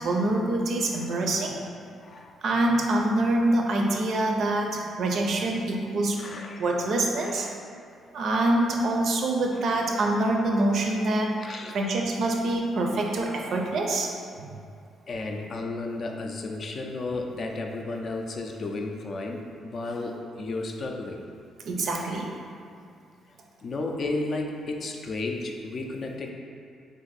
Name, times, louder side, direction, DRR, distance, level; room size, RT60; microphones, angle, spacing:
voice 1, 0.0-1.6 2.4-6.2 6.6-7.5 8.1-11.3 11.7-14.5 21.6-22.3, right 2 dB, 65° right, 1 dB, 0.4 m, -25 dB
voice 2, 1.0-1.3 2.0-2.3 6.2-6.7 7.2-7.5 11.4-11.8 15.1-21.2 23.6-26.3, left 2 dB, 50° left, 2 dB, 0.4 m, -33 dB
2.5 x 2.5 x 4.0 m, 2.4 s
cardioid pair, 90°, 0 cm